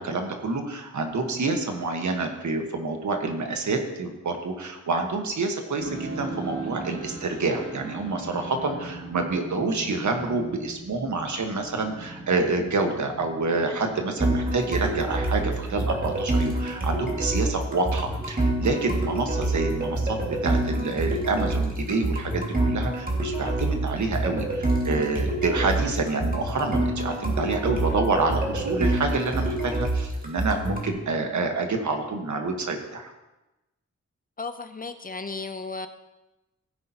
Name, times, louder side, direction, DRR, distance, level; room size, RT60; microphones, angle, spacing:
voice 1, 0.0-20.2 20.4-33.1, right 3 dB, 80° right, 4 dB, 1.4 m, -27 dB
sound 1, 5.8-25.7, right 2 dB, 50° right, 2.4 m, -42 dB
sound 2, 14.2-30.9, right 2 dB, 30° right, 2.1 m, -27 dB
voice 2, 34.4-35.9, left 3 dB, 30° left, 9 dB, 0.6 m, -34 dB
16.0 x 9.7 x 2.9 m, 1.0 s
wide cardioid pair, 145°, 29 cm